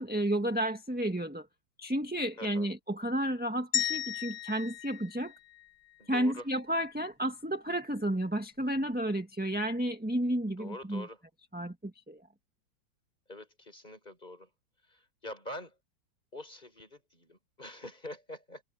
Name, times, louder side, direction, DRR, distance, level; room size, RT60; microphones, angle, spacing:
voice 1, 0.0-1.5 1.8-5.3 6.1-11.0 11.5-12.2, right 1 dB, 5° right, 1.3 m, -32 dB
voice 2, 2.4-2.7 6.0-6.5 10.4-11.2 13.3-14.5 14.8-15.8 16.3-18.6, left 1 dB, 20° left, 6.0 m, -45 dB
sound 1, 3.7-6.0, left 10 dB, 60° left, 1.3 m, -35 dB
omnidirectional pair, 2.2 m